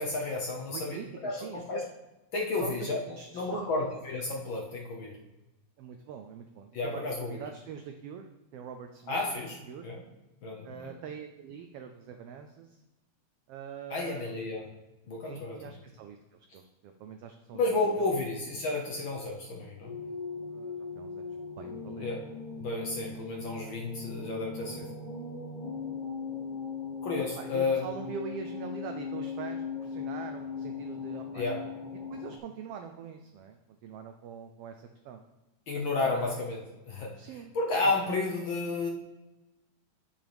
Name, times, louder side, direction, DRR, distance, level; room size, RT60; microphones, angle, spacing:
voice 1, 0.0-1.8 2.3-3.0 3.3-5.1 6.7-7.4 9.1-10.0 10.4-11.0 13.9-14.6 15.1-15.7 17.5-19.9 22.0-22.2 22.6-24.9 27.0-27.9 31.3-31.6 35.7-36.6 36.9-37.2 37.5-38.9, left 3 dB, 65° left, -1 dB, 1.3 m, -32 dB
voice 2, 0.7-1.9 2.6-3.9 5.8-9.2 9.7-9.9 10.6-12.8 13.5-14.3 15.2-18.1 20.4-21.3 21.6-22.1 27.4-31.7 32.1-35.2 36.0-36.4 37.2-37.6, right 7 dB, 85° right, 6 dB, 1.3 m, -43 dB
sound 1, 19.8-32.4, left 5 dB, 35° left, 0.7 m, -39 dB
9.9 x 7.7 x 3.5 m, 1.0 s
omnidirectional pair, 3.3 m